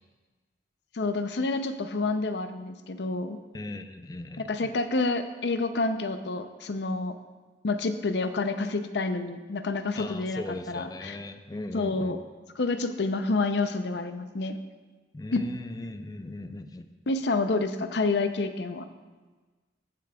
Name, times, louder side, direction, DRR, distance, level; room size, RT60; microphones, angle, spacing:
voice 1, 0.9-3.4 4.4-7.2 7.6-11.2 11.7-12.2 12.6-14.6 15.3-15.4 17.1-18.8, left 3 dB, 75° left, 9 dB, 0.6 m, -28 dB
voice 2, 3.5-4.7 10.0-12.2 15.1-16.9, left 2 dB, 20° left, 9 dB, 0.4 m, -38 dB
14.5 x 8.5 x 2.3 m, 1.3 s
head